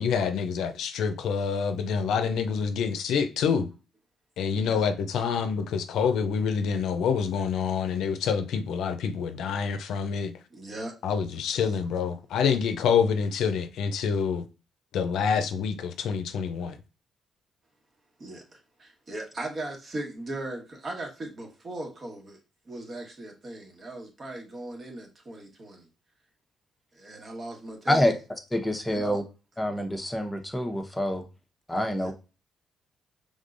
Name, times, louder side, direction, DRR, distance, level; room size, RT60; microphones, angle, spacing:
voice 1, 0.0-3.7 4.4-10.3 11.0-14.4 14.9-16.8, left 6 dB, 80° left, 0.5 m, -27 dB
voice 2, 10.5-11.0 18.2-22.4 22.6-25.9 26.9-28.1 28.9-29.2 31.9-32.1, right 1 dB, 40° right, 1.4 m, -38 dB
voice 3, 28.5-29.2 29.6-31.2 31.7-32.1, left 1 dB, 10° left, 0.8 m, -26 dB
5.3 x 3.6 x 2.5 m
cardioid pair, 90°, 0 cm